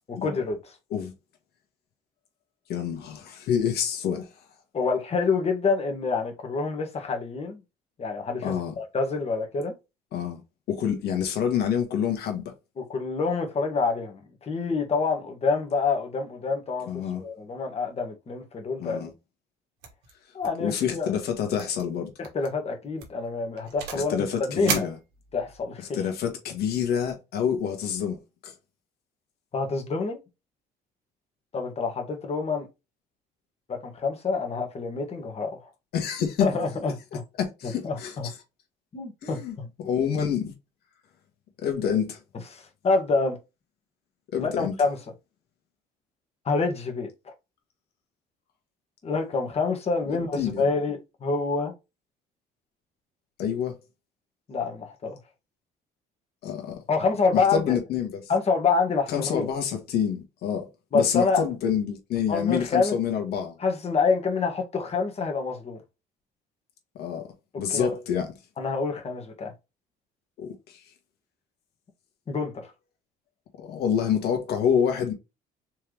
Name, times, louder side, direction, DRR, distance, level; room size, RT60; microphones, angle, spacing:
voice 1, 0.1-0.7 4.7-7.6 8.0-9.7 12.8-16.9 17.1-19.1 20.3-21.1 22.2-24.9 25.3-25.8 29.5-30.2 31.5-32.7 33.7-35.7 36.4-37.2 37.8-38.3 38.9-39.7 42.5-43.4 44.4-45.0 46.4-47.3 49.0-51.7 54.5-55.2 56.9-57.8 58.3-59.5 60.9-61.4 62.3-63.0 63.6-65.8 67.7-67.9 68.6-69.5 72.3-72.7, left 4 dB, 40° left, 1.7 m, -27 dB
voice 2, 2.7-4.3 8.4-8.7 10.1-10.4 10.7-12.4 16.9-17.2 18.8-19.1 20.6-22.1 23.9-25.0 25.9-28.5 35.9-36.5 37.4-38.4 39.2-40.5 41.6-42.2 44.3-44.7 50.1-50.7 53.4-53.8 56.4-56.8 57.3-58.2 59.1-60.7 60.9-63.6 67.0-68.3 70.4-70.8 73.6-75.1, left 8 dB, 70° left, 1.7 m, -27 dB
sound 1, 19.8-20.1 20.4-20.7 20.9-21.0 21.6-21.8 22.2-22.5 23.0-24.1 24.6-25.6, right 6 dB, 90° right, 1.5 m, -34 dB
4.4 x 3.5 x 3.1 m
cardioid pair, 110°, 17 cm